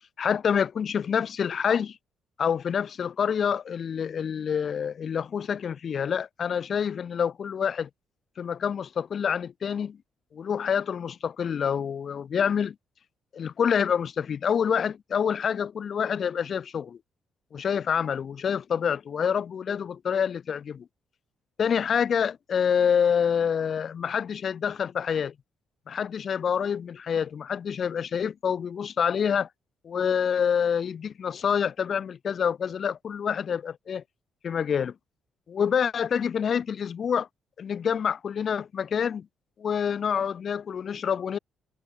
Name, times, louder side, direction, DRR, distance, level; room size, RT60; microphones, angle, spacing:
voice 1, 0.2-2.0 2.4-7.9 8.4-10.0 10.3-12.7 13.3-17.0 17.5-20.9 21.6-25.3 25.9-29.5 29.8-34.0 34.4-34.9 35.5-37.3 37.6-39.3 39.6-41.4, left 7 dB, 50° left, 5.1 m, -27 dB
cardioid pair, 90°, 0 cm